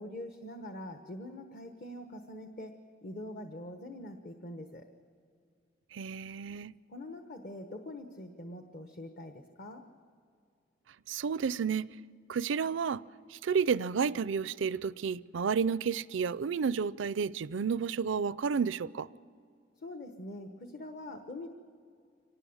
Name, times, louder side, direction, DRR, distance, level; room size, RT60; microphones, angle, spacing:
voice 1, 0.0-4.9 6.9-9.8 19.8-21.5, left 1 dB, 50° left, 1.2 m, -44 dB
voice 2, 5.9-6.7 11.1-11.9 12.3-13.0 13.3-19.1, right 6 dB, 75° right, 0.4 m, -31 dB
25.5 x 19.0 x 7.2 m
head